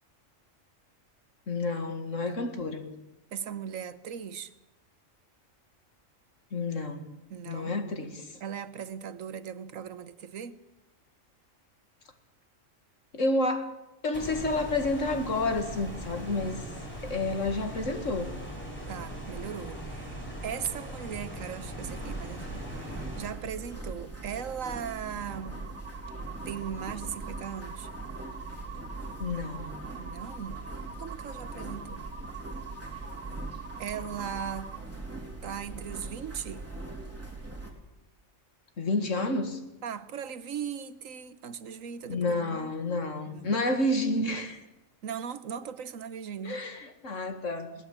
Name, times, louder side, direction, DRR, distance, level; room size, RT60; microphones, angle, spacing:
voice 1, 1.5-2.9 6.5-7.0 7.5-8.3 13.1-13.8 14.0-16.5 17.0-18.4 29.2-29.7 38.8-39.6 42.1-44.6 46.4-47.7, left 2 dB, 70° left, 6 dB, 2.4 m, -30 dB
voice 2, 2.2-2.5 3.3-4.5 7.3-7.8 8.4-10.6 18.9-25.7 26.4-27.9 30.0-30.6 31.0-32.1 33.8-34.7 35.4-36.7 39.8-42.7 43.2-43.6 45.0-46.6, right 8 dB, 80° right, 14 dB, 1.4 m, -38 dB
sound 1, 14.1-23.3, right 1 dB, 10° left, 5.9 m, -40 dB
sound 2, 21.8-37.7, right 3 dB, 10° right, 3.4 m, -41 dB
sound 3, 24.9-34.8, right 4 dB, 60° right, 2.1 m, -45 dB
21.5 x 18.0 x 7.5 m, 0.96 s
omnidirectional pair, 1.4 m